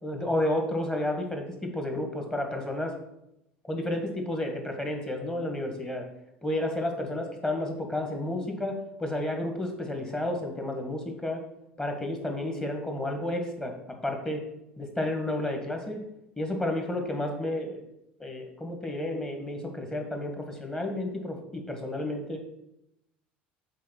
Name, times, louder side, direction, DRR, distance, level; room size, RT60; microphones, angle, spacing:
voice 1, 0.0-3.0 3.6-6.0 6.4-11.4 11.8-14.4 14.8-16.0 16.4-17.8 18.2-22.4, left 1 dB, 15° left, 4 dB, 1.7 m, -31 dB
7.5 x 3.7 x 5.9 m, 0.85 s
figure-of-eight pair, 65°, 5 cm